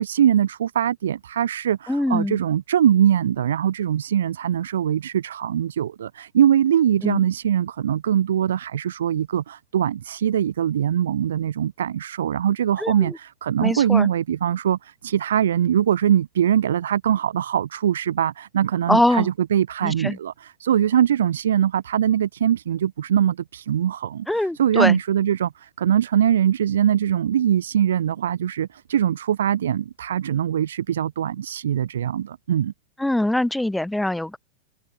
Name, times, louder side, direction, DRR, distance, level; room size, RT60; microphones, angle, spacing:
voice 1, 0.0-32.7, right 10 dB, 65° right, 2.3 m, -22 dB
voice 2, 1.9-2.4 7.0-7.2 12.8-13.2 13.6-14.1 18.9-19.3 19.8-20.2 24.3-25.0 33.0-34.4, left 1 dB, 5° left, 0.7 m, -23 dB
figure-of-eight pair, 90°, 0 cm